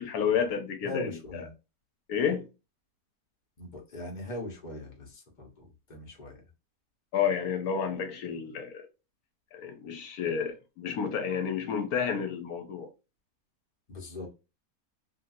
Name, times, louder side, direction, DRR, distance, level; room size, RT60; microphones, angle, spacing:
voice 1, 0.0-1.1 2.1-2.5 7.1-8.9 9.5-12.9, left 7 dB, 80° left, 1.1 m, -30 dB
voice 2, 0.8-1.5 3.6-6.4 13.9-14.3, left 2 dB, 35° left, 1.1 m, -40 dB
3.1 x 2.6 x 2.5 m
omnidirectional pair, 1.6 m